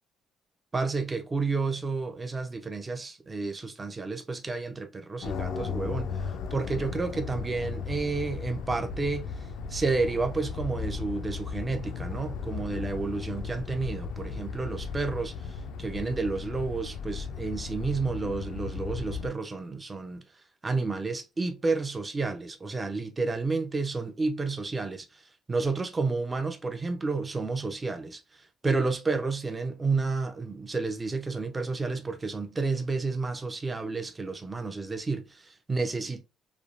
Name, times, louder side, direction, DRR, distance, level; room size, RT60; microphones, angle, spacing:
voice 1, 0.7-9.3 9.7-20.2 20.6-25.1 25.5-28.2 28.6-36.2, right 3 dB, 15° right, 0.4 m, -31 dB
sound 1, 5.2-19.3, left 5 dB, 75° left, 0.3 m, -36 dB
3.1 x 2.2 x 2.4 m
cardioid pair, 165°, 0 cm